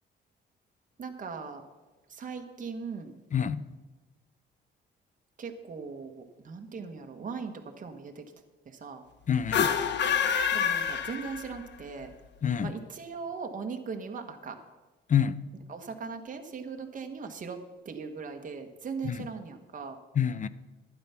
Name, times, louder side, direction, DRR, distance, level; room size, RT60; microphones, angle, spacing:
voice 1, 1.0-1.6 2.1-3.2 5.4-8.2 8.6-9.0 10.5-12.1 12.6-14.6 15.7-17.6 17.8-20.0, right 5 dB, 40° right, 4 dB, 1.4 m, -39 dB
voice 2, 3.3-3.6 9.3-9.7 12.4-12.7 15.1-15.4 19.0-19.3 20.1-20.5, left 8 dB, 40° left, 15 dB, 0.6 m, -27 dB
sound 1, 9.4-11.7, left 7 dB, 65° left, 1.0 m, -27 dB
12.0 x 9.7 x 5.8 m, 1.2 s
cardioid pair, 90°, 20 cm